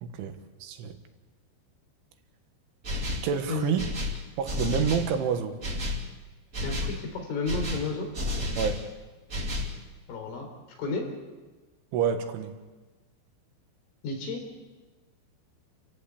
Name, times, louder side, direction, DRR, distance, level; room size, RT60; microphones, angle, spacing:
voice 1, 0.0-1.0 3.2-3.9 4.4-5.6 8.6-8.8 11.9-12.6, right 7 dB, 80° right, 7 dB, 3.9 m, -28 dB
sound 1, 2.8-3.3 3.8-5.1 5.6-6.0 6.5-7.0 7.4-8.8 9.3-9.8, left 2 dB, 30° right, 1.4 m, -31 dB
voice 2, 6.6-8.1 10.1-10.5 10.8-11.1 14.0-14.4, left 3 dB, 80° left, 3 dB, 6.3 m, -32 dB
28.5 x 15.0 x 8.5 m, 1.3 s
omnidirectional pair, 5.6 m